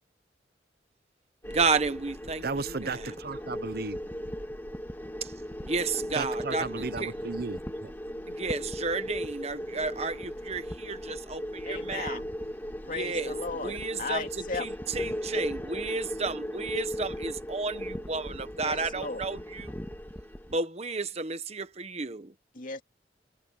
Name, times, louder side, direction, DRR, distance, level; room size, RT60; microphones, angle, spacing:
sound 1, 1.4-20.6, equal, 10° left, 2.0 m, -37 dB
voice 1, 1.5-2.4 2.8-3.1 5.2-5.3 5.6-7.1 8.3-12.2 12.8-13.3 13.6-14.2 14.5-19.7 20.5-22.3, right 4 dB, 35° right, 1.1 m, -32 dB
voice 2, 2.4-4.0 6.1-7.9, right 4 dB, 60° right, 0.9 m, -35 dB
voice 3, 11.6-12.2 12.8-14.7 18.6-19.3 22.5-22.8, left 3 dB, 50° left, 2.5 m, -36 dB
head